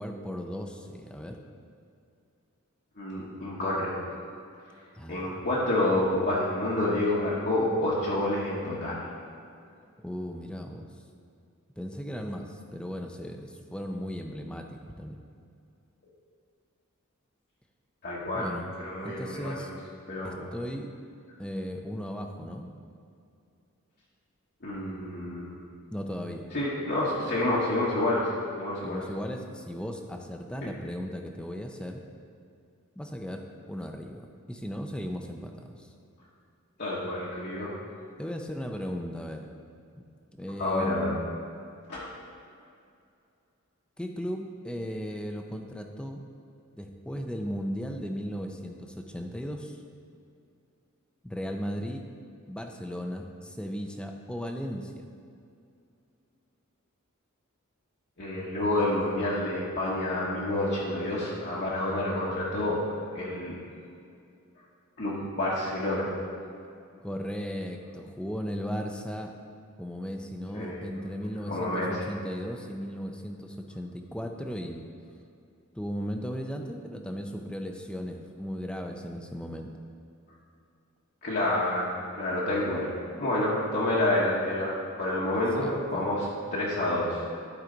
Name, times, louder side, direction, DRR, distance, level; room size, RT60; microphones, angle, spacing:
voice 1, 0.0-1.4 5.0-5.4 10.0-10.9 11.8-15.2 18.3-18.7 19.0-19.7 20.2-20.9 21.4-22.7 25.9-26.5 28.8-32.0 33.0-35.9 38.2-39.5 40.3-41.1 44.0-46.2 46.8-49.8 51.2-52.0 52.5-55.1 67.0-69.3 69.8-74.9 75.7-79.7 85.3-86.1, equal, 5° left, 4 dB, 0.5 m, -36 dB
voice 2, 3.0-4.2 5.1-9.0 18.0-18.5 18.8-19.6 20.1-20.5 24.6-25.6 26.5-28.3 28.6-29.0 30.6-30.7 36.8-37.7 40.6-41.1 41.9-42.1 58.2-62.8 63.1-63.6 65.0-66.1 70.5-70.8 71.5-72.0 81.2-82.9 83.2-86.2 86.5-87.2, left 1 dB, 55° left, -7 dB, 1.2 m, -28 dB
12.0 x 4.9 x 3.9 m, 2.5 s
head